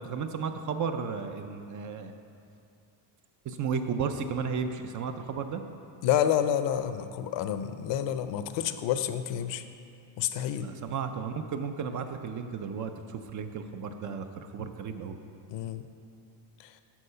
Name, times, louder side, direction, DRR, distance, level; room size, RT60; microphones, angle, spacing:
voice 1, 0.0-2.1 3.4-5.6 10.5-15.2, right 6 dB, 40° right, 7 dB, 0.5 m, -34 dB
voice 2, 6.0-9.6 10.2-10.7 15.5-15.9, left 10 dB, 70° left, 10 dB, 0.6 m, -29 dB
13.0 x 4.7 x 5.5 m, 2.5 s
cardioid pair, 165°, 46 cm